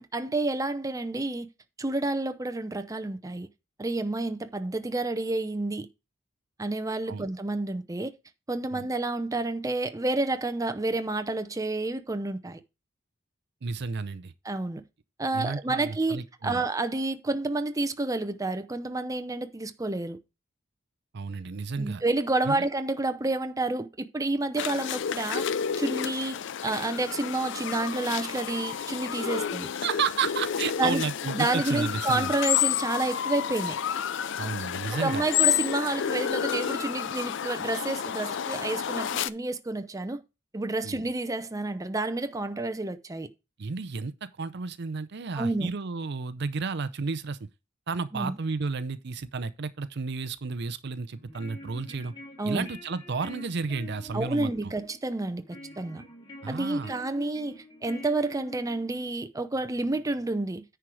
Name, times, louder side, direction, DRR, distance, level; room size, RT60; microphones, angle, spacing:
voice 1, 0.0-1.5 1.8-3.5 3.8-5.9 6.6-8.1 8.5-12.6 14.4-14.8 15.2-20.2 21.8-25.5 25.8-29.7 30.8-31.1 31.3-33.8 34.9-40.2 40.5-43.3 45.3-45.7 48.1-48.3 52.4-52.7 54.1-55.4 55.8-56.0 56.5-60.6, right 2 dB, 15° right, 0.6 m, -29 dB
voice 2, 13.6-14.3 15.3-16.6 21.1-22.0 22.5-22.6 29.8-32.3 34.4-35.3 40.8-41.0 43.6-47.4 47.9-52.1 52.4-54.7 56.4-56.9, right 4 dB, 60° right, 0.6 m, -32 dB
sound 1, 24.6-39.3, left 9 dB, 65° left, 0.4 m, -30 dB
sound 2, 51.1-59.1, left 1 dB, 25° left, 2.7 m, -46 dB
9.9 x 4.6 x 4.8 m
head